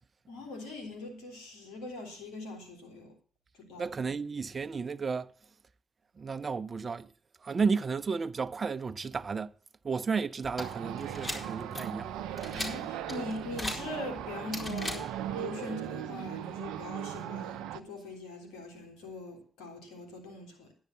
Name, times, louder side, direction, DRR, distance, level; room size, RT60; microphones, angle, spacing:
voice 1, 0.3-3.1 3.6-3.9 12.5-20.7, left 2 dB, 80° left, 3.6 m, -42 dB
voice 2, 3.8-5.3 6.2-7.1 7.4-9.5 9.8-12.1, right 5 dB, 50° right, 0.7 m, -33 dB
sound 1, 10.4-15.4, left 1 dB, 35° left, 4.4 m, -41 dB
sound 2, 10.6-17.8, right 11 dB, 85° right, 0.7 m, -38 dB
11.0 x 10.5 x 5.7 m
hypercardioid pair, 45°, 0 cm